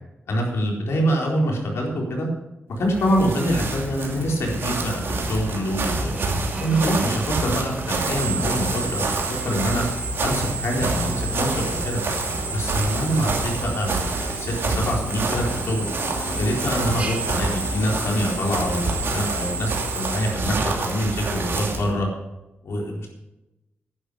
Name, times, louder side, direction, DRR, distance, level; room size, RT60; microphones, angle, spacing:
voice 1, 0.3-2.3 2.8-6.2 6.6-9.1 9.4-9.8 10.2-12.0 12.5-15.8 16.4-18.9 19.1-22.1 22.6-23.1, equal, 80° left, -1 dB, 4.2 m, -25 dB
sound 1, 2.8-21.9, right 3 dB, 65° right, 2.7 m, -28 dB
Drill, 3.0-20.3, right 3 dB, 30° right, 1.5 m, -34 dB
Motorcycle, 12.4-19.6, left 1 dB, 40° left, 3.8 m, -40 dB
11.0 x 11.0 x 6.4 m, 0.97 s
wide cardioid pair, 175°, 4 cm